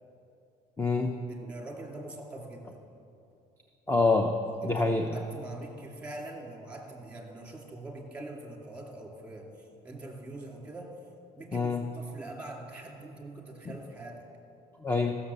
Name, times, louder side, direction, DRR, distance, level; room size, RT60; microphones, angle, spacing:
voice 1, 0.8-1.2 1.4-1.5 3.9-4.4 4.6-5.1 11.5-11.9 14.8-15.1, left 3 dB, 15° left, 5 dB, 0.6 m, -26 dB
voice 2, 1.3-2.8 4.6-4.8 5.1-9.5 9.8-10.9 11.3-14.3, right 2 dB, 10° right, 0 dB, 2.4 m, -43 dB
14.5 x 6.8 x 6.8 m, 2.6 s
cardioid pair, 110°, 17 cm